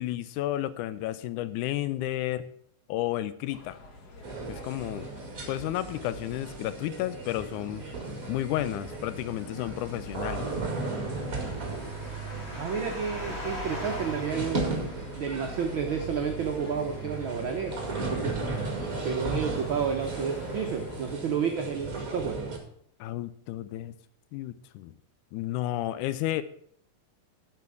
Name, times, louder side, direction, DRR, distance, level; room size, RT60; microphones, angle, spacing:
voice 1, 0.0-2.4 2.9-3.8 4.5-5.1 5.5-7.9 8.3-10.5 23.0-23.9 24.3-25.0 25.3-26.4, left 14 dB, 80° left, 14 dB, 1.9 m, -32 dB
sound 1, 3.5-21.2, left 1 dB, 55° left, 1.0 m, -47 dB
sound 2, 4.2-22.6, right 3 dB, 30° right, 1.8 m, -36 dB
sound 3, 9.4-15.6, equal, 30° left, 1.3 m, -41 dB
voice 2, 12.5-14.6 15.2-17.7 18.1-18.3 19.0-22.4, right 6 dB, 80° right, 3 dB, 1.1 m, -31 dB
8.4 x 6.9 x 6.9 m, 0.64 s
omnidirectional pair, 3.7 m